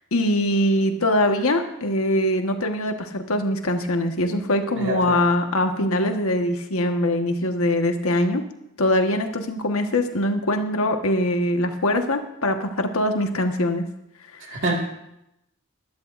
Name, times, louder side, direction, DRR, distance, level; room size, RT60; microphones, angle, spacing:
voice 1, 0.1-8.4 8.8-13.9 14.5-14.6, left 1 dB, 70° left, 5 dB, 1.4 m, -22 dB
voice 2, 4.8-5.2 14.4-14.7, right 2 dB, 60° right, 0 dB, 2.0 m, -26 dB
21.0 x 12.0 x 2.6 m, 0.84 s
head